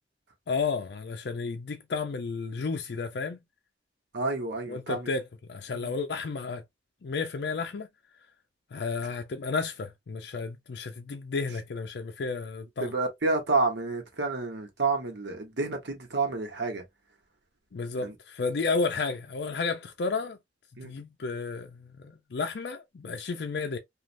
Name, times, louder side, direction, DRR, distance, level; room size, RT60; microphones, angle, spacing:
voice 1, 0.5-3.4 4.7-6.6 7.0-7.9 8.7-12.9 17.7-20.4 20.8-23.8, left 4 dB, 60° left, 0.4 m, -32 dB
voice 2, 4.1-5.1 5.7-5.9 12.8-16.8 18.0-18.1 20.8-20.9, right 3 dB, 70° right, 1.1 m, -29 dB
3.2 x 2.4 x 2.5 m
head